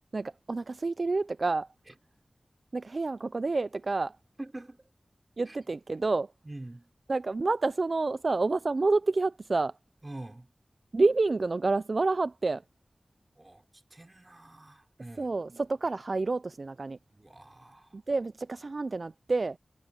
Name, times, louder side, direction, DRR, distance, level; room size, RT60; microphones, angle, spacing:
voice 1, 0.1-1.7 2.7-4.2 5.4-6.3 7.1-9.7 10.9-12.6 15.2-17.0 17.9-19.6, right 3 dB, 60° right, 0.4 m, -28 dB
voice 2, 4.4-4.9 5.5-5.6 6.4-6.9 10.0-10.5 13.4-13.6 13.9-15.3 17.1-18.0, right 2 dB, 30° right, 4.6 m, -45 dB
wide cardioid pair, 60°, 0 cm